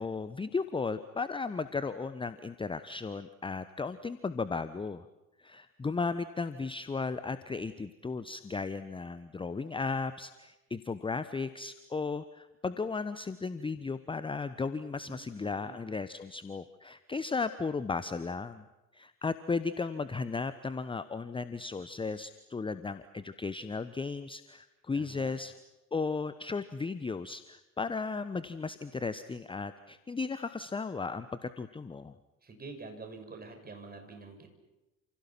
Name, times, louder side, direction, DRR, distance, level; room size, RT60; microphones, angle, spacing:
voice 1, 0.0-5.1 5.4-18.6 18.9-25.5 25.9-32.1, left 4 dB, 10° left, 13 dB, 1.0 m, -35 dB
voice 2, 14.9-15.8 24.9-25.3 32.4-34.5, right 3 dB, 20° right, 4 dB, 6.6 m, -47 dB
30.0 x 28.5 x 6.0 m, 1.0 s
figure-of-eight pair, 60°, 42 cm